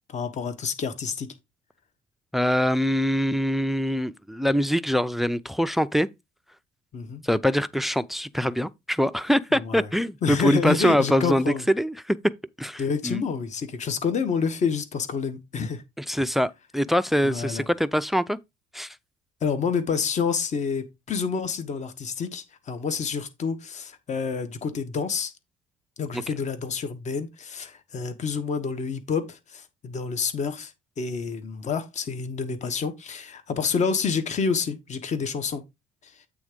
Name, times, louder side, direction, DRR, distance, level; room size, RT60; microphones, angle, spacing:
voice 1, 0.1-1.3 6.9-7.2 9.5-9.9 10.2-11.6 12.8-15.8 17.2-17.6 19.4-25.3 26.0-30.7 31.0-35.6 36.0-36.1, left 5 dB, 45° left, 1.3 m, -28 dB
voice 2, 2.3-6.1 7.2-12.2 12.6-13.2 16.0-18.4 18.7-18.9 26.1-26.2, equal, ahead, 0.4 m, -24 dB
8.5 x 3.6 x 5.0 m
cardioid pair, 110°, 17 cm